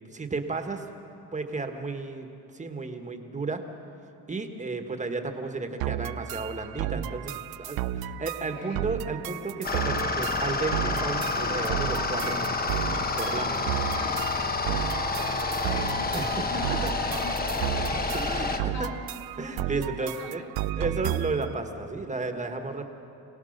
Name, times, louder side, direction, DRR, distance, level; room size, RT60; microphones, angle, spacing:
voice 1, 0.1-0.9 1.3-3.6 4.3-12.8 13.2-13.7 16.1-16.9 18.1-18.9 19.4-20.4 20.8-22.9, right 3 dB, 20° right, 5 dB, 1.5 m, -33 dB
sound 1, 5.8-21.5, right 13 dB, 85° right, 0.6 m, -33 dB
sound 2, 9.6-18.6, left 3 dB, 25° left, 1.1 m, -29 dB
voice 2, 14.0-14.5 15.1-18.1 18.4-19.0 19.7-20.5 20.8-20.9, left 4 dB, 90° left, 1 dB, 2.7 m, -43 dB
27.0 x 17.5 x 6.6 m, 2.6 s
cardioid pair, 130°, 36 cm